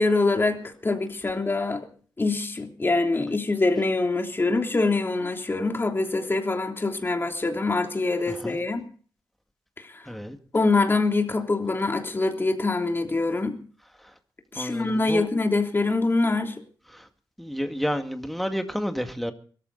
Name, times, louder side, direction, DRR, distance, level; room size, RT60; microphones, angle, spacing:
voice 1, 0.0-1.8 2.2-8.8 9.8-10.1 10.5-13.6 14.5-16.5, left 3 dB, 30° left, 3.2 m, -24 dB
voice 2, 10.1-10.4 14.6-15.3 16.9-17.0 17.4-19.3, equal, ahead, 2.1 m, -30 dB
23.5 x 13.5 x 4.1 m
wide cardioid pair, 135°, 8 cm